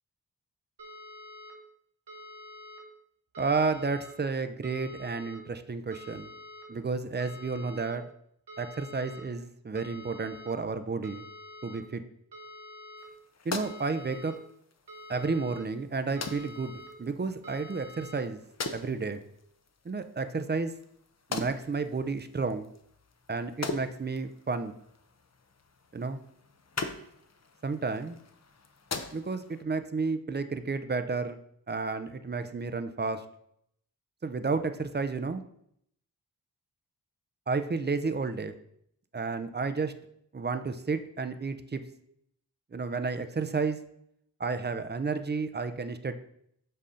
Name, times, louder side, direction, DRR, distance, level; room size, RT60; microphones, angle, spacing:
sound 1, 0.8-1.5 2.1-2.8 3.3-4.1 4.6-5.4 5.9-6.6 7.2-7.9 8.5-9.2 9.7-10.5 11.0-11.8 12.3-13.0 13.6-14.3 14.9-15.6 16.2-16.9 17.4-18.2, left 1 dB, 90° right, 1.2 m, -47 dB
voice 1, 3.4-6.3 6.7-8.0 8.6-11.2 11.6-12.0 13.5-14.3 15.1-16.7 17.0-18.4 18.7-19.2 19.8-20.7 21.3-22.7 23.3-24.8 25.9-26.2 27.6-28.2 29.1-31.4 31.7-33.2 34.2-35.4 37.5-38.5 39.1-39.9 40.3-41.8 42.7-43.8 44.4-46.1, right 4 dB, 25° right, 9 dB, 0.5 m, -31 dB
sound 2, 13.0-29.6, left 4 dB, 40° left, 0.7 m, -42 dB
7.5 x 2.7 x 5.0 m, 0.72 s
cardioid pair, 60°, 41 cm